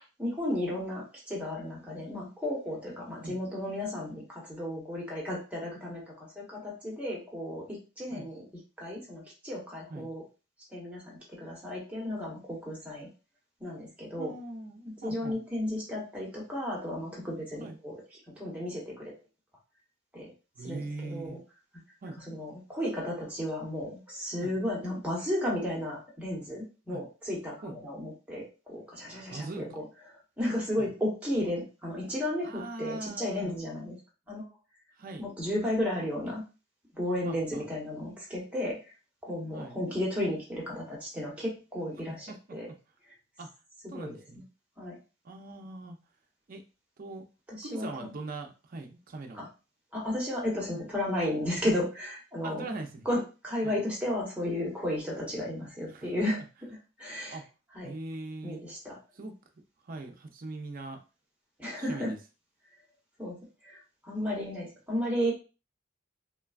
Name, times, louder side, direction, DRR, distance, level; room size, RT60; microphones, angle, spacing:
voice 1, 0.2-7.6 8.0-8.4 8.8-10.2 10.7-13.1 13.6-14.3 15.0-18.0 18.4-19.1 20.1-20.3 20.6-20.8 21.1-21.4 22.3-29.8 30.4-34.0 34.3-34.5 35.2-36.4 37.0-38.8 39.2-42.7 43.9-44.1 44.8-45.0 47.5-48.1 49.4-49.5 49.9-52.6 53.0-56.4 56.7-57.4 57.7-57.9 58.4-58.9 61.6-62.1 63.2-63.4 63.6-63.8 64.1-65.3, left 1 dB, 5° right, -4 dB, 0.9 m, -33 dB
voice 2, 14.2-15.4 17.6-17.8 20.6-21.4 22.0-22.2 24.4-24.6 26.9-27.0 27.6-27.8 29.3-29.8 30.8-30.9 32.4-33.5 35.0-35.2 37.2-37.7 39.5-39.8 42.0-42.8 43.4-43.5 43.9-44.4 45.2-46.0 46.5-46.6 47.0-47.3 47.6-49.5 52.4-53.1 53.6-53.8 55.9-56.1 57.3-57.4 57.8-58.6 59.1-59.3 59.8-61.0 61.8-62.2, right 2 dB, 45° right, 4 dB, 0.4 m, -41 dB
3.2 x 2.2 x 2.3 m, 0.32 s
head